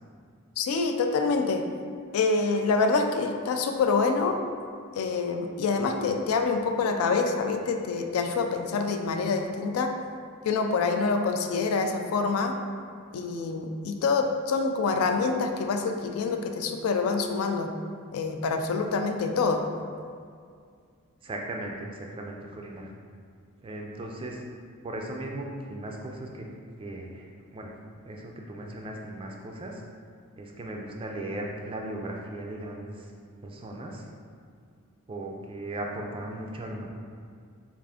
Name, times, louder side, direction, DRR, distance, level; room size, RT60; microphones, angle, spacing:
voice 1, 0.6-1.6 2.1-4.4 4.9-9.9 10.4-12.6 13.1-17.7 18.1-19.6, left 4 dB, 80° left, 4 dB, 0.3 m, -26 dB
voice 2, 21.2-22.9 23.6-24.4 24.8-26.5 26.8-27.3 27.5-27.7 28.0-29.8 30.4-33.1 33.4-34.1 35.1-36.9, right 1 dB, 25° right, 1 dB, 0.3 m, -37 dB
3.5 x 2.5 x 3.4 m, 2.2 s
head